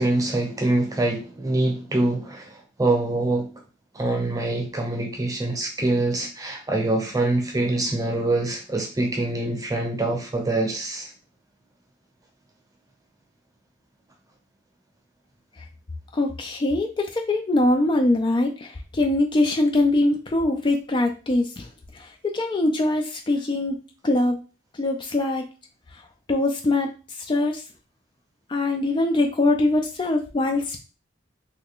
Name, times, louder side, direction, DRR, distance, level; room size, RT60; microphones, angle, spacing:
voice 1, 0.0-3.5 3.9-11.1, right 2 dB, 20° right, 1 dB, 0.8 m, -24 dB
voice 2, 16.1-24.4 24.7-25.5 25.9-26.0 26.3-27.6 28.5-30.8, left 2 dB, 25° left, 3 dB, 0.3 m, -23 dB
3.2 x 2.4 x 3.5 m, 0.34 s
head